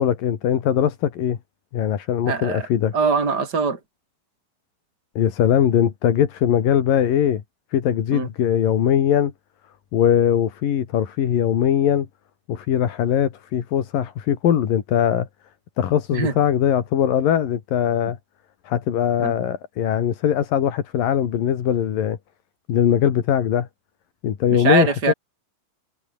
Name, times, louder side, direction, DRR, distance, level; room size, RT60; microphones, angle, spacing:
voice 1, 0.0-1.4 1.7-2.9 5.2-7.4 7.7-9.3 9.9-12.1 12.5-15.3 15.8-18.2 18.7-22.2 22.7-23.7 24.2-25.1, left 9 dB, 90° left, 3.9 m, -20 dB
voice 2, 2.3-2.7 2.9-3.8 8.1-8.3 16.1-16.3 19.2-19.3 24.5-25.1, right 5 dB, 30° right, 5.0 m, -22 dB
omnidirectional pair, 3.9 m